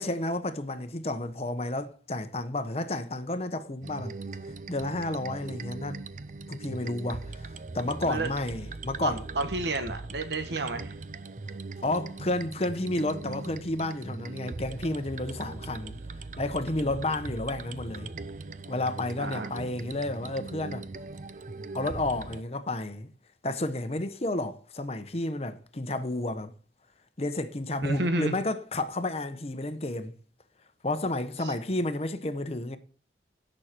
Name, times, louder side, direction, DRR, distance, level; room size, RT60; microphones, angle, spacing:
voice 1, 0.0-4.2 4.4-6.0 6.5-9.2 11.8-16.0 16.4-18.1 18.7-20.9 21.7-23.1 23.4-26.5 27.2-30.1 30.8-32.8, left 2 dB, 35° left, 0.9 m, -31 dB
sound 1, 3.8-22.4, right 3 dB, 45° right, 0.6 m, -40 dB
voice 2, 9.0-10.9 19.2-19.5 27.8-28.4 31.4-31.5, right 2 dB, 80° right, 1.1 m, -30 dB
16.5 x 6.4 x 4.4 m
head